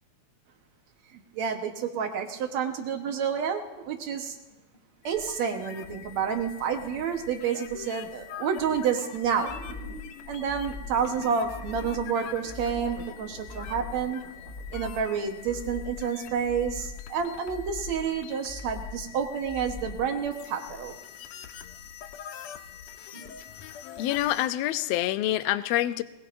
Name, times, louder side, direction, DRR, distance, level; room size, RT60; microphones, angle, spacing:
voice 1, 1.1-4.4 5.0-9.5 10.3-14.2 14.7-20.9, right 7 dB, 65° right, 4 dB, 2.3 m, -29 dB
sound 1, 4.4-7.3 7.8-8.0 8.3-16.2 16.8-16.9 17.3-19.7 20.1-20.3 20.7-20.8 21.5-21.6 22.0-22.1 22.4-22.6 23.0-23.3, right 1 dB, 15° left, 2.9 m, -49 dB
sound 2, 5.0-24.5, left 9 dB, 70° left, 1.8 m, -45 dB
sound 3, 9.5-10.1 10.5-11.1 11.5-12.1 12.5-13.1 13.5-14.1 14.5-15.1 15.5-16.1 16.5-17.1 17.5-18.1 18.5-19.1 19.5-20.1, left 4 dB, 40° left, 1.0 m, -41 dB
voice 2, 24.0-26.0, left 14 dB, 85° left, 12 dB, 1.4 m, -26 dB
21.0 x 20.5 x 2.6 m, 1.0 s
omnidirectional pair, 3.6 m